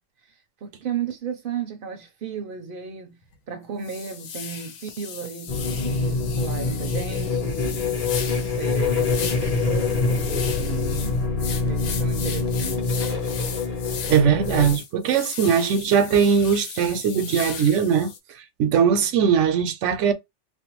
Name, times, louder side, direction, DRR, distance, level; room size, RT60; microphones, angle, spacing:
voice 1, 0.6-3.2 3.5-11.3 11.6-12.9, right 7 dB, 60° right, 0.6 m, -34 dB
sound 1, 3.2-3.3 3.8-18.2, left 7 dB, 85° left, 0.9 m, -36 dB
sound 2, 5.5-14.7, left 4 dB, 40° left, 0.7 m, -25 dB
voice 2, 14.1-18.1 18.6-20.1, right 7 dB, 85° right, 0.9 m, -20 dB
2.5 x 2.1 x 2.9 m
omnidirectional pair, 1.2 m